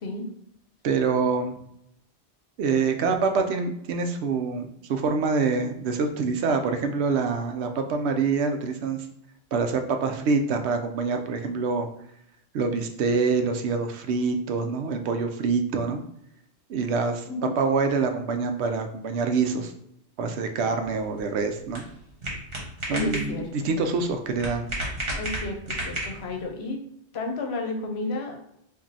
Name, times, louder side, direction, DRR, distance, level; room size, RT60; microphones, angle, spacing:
voice 1, 0.8-1.6 2.6-9.1 9.5-11.9 12.5-16.0 16.7-17.2 17.6-19.7 20.2-21.8 22.9-24.7, right 4 dB, 75° right, 6 dB, 0.8 m, -25 dB
sound 1, 20.9-26.4, right 1 dB, 60° right, 1.3 m, -34 dB
voice 2, 22.9-23.7 25.2-26.8 27.1-28.4, left 2 dB, 70° left, 4 dB, 0.9 m, -32 dB
4.9 x 2.6 x 2.7 m, 0.75 s
omnidirectional pair, 1.1 m